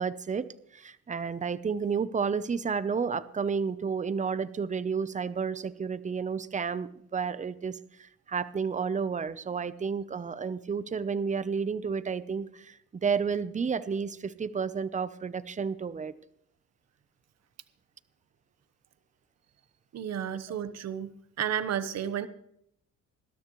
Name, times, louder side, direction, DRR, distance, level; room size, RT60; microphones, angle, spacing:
voice 1, 0.0-16.1, right 6 dB, 25° right, 15 dB, 0.7 m, -31 dB
voice 2, 19.9-21.1 21.4-22.3, right 9 dB, 60° right, 12 dB, 1.0 m, -32 dB
20.5 x 12.5 x 3.1 m, 0.73 s
cardioid pair, 90°, 30 cm